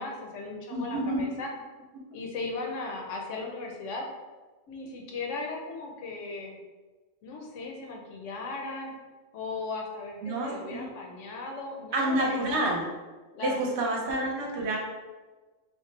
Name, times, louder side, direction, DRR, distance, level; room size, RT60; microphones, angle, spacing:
voice 1, 0.0-1.5 2.1-4.1 4.7-6.6 7.2-8.9 9.3-12.4 13.3-13.5 13.8-13.9, left 3 dB, 75° left, 0 dB, 0.9 m, -37 dB
voice 2, 0.7-1.2 10.2-10.9 11.9-12.8 13.4-14.8, right 1 dB, 65° right, -2 dB, 0.9 m, -28 dB
3.1 x 2.0 x 3.2 m, 1.3 s
omnidirectional pair, 1.3 m